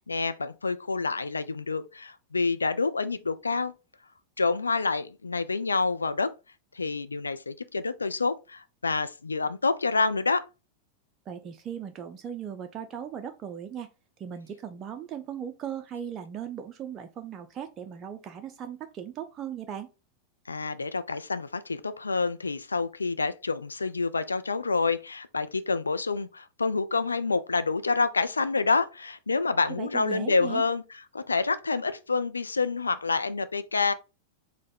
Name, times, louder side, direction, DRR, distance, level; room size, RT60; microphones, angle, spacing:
voice 1, 0.1-3.7 4.4-6.3 6.7-10.4 20.5-30.8 31.1-33.9, left 4 dB, 75° left, 0.3 m, -28 dB
voice 2, 11.3-13.9 14.2-19.9 29.8-30.6, right 8 dB, 30° right, 0.4 m, -38 dB
4.2 x 2.1 x 4.2 m
figure-of-eight pair, 90°, 0 cm